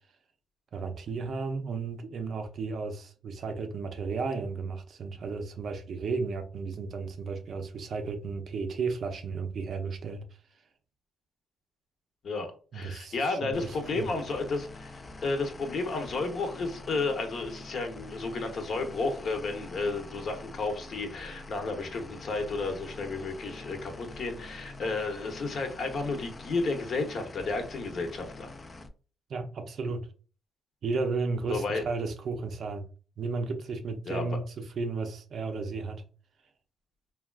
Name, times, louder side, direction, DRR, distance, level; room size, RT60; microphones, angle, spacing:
voice 1, 0.7-10.2 12.7-14.1 29.3-30.1 30.8-32.9 33.2-36.0, right 4 dB, 55° right, 0.5 m, -34 dB
voice 2, 12.2-28.5 31.5-31.8 34.1-34.3, left 3 dB, 50° left, 0.7 m, -32 dB
sound 1, 13.5-28.9, left 2 dB, 25° left, 0.4 m, -45 dB
3.4 x 2.3 x 2.3 m
cardioid pair, 105°, 0 cm